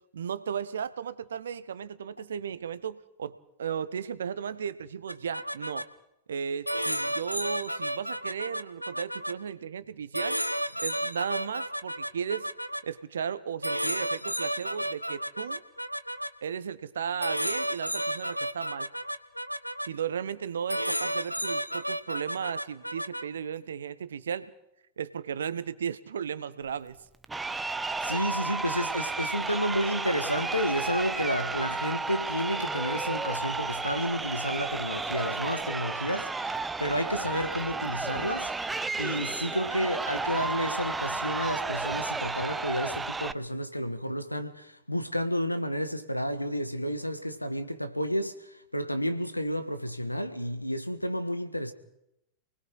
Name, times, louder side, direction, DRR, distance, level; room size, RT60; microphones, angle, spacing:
voice 1, 0.1-5.9 6.3-10.4 10.8-12.5 12.8-15.6 16.4-18.9 19.8-24.5 25.0-27.0, right 7 dB, 65° right, 1.1 m, -35 dB
sound 1, 5.1-5.8 6.7-9.3 10.1-12.8 13.6-16.3 17.2-19.9 20.7-23.3, equal, 90° right, 0.8 m, -32 dB
Crowd, 27.2-43.3, right 3 dB, 10° right, 0.7 m, -32 dB
voice 2, 28.0-38.5 39.0-51.7, equal, 90° left, 1.7 m, -31 dB
28.0 x 20.0 x 4.9 m
figure-of-eight pair, 90°, 0 cm